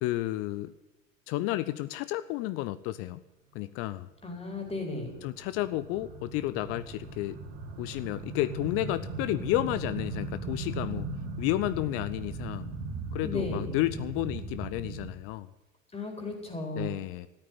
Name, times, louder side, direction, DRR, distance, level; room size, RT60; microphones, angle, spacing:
voice 1, 0.0-0.7 1.3-3.2 3.5-4.1 5.2-7.4 7.8-11.1 11.4-12.7 13.1-15.5 16.8-17.3, left 16 dB, 35° left, 15 dB, 0.6 m, -31 dB
voice 2, 4.2-5.1 13.2-13.7 15.9-16.9, left 3 dB, 15° left, 2 dB, 4.3 m, -35 dB
sound 1, 4.3-15.1, right 3 dB, 40° right, 3.1 m, -38 dB
14.0 x 8.9 x 9.2 m, 0.98 s
figure-of-eight pair, 80°, 40 cm